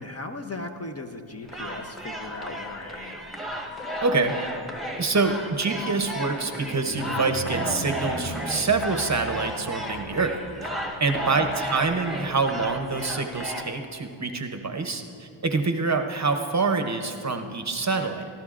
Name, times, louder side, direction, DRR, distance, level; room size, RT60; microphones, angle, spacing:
voice 1, 0.0-3.3 11.1-11.6, left 2 dB, 30° left, 4 dB, 0.7 m, -37 dB
sound 1, 1.4-13.6, equal, ahead, 1.2 m, -34 dB
sound 2, 3.7-13.2, right 1 dB, 50° left, 3.6 m, -41 dB
voice 2, 4.0-4.4 5.0-10.4 11.0-18.3, right 4 dB, 35° right, 6 dB, 0.8 m, -26 dB
24.0 x 13.5 x 2.5 m, 2.5 s
wide cardioid pair, 105°, 50 cm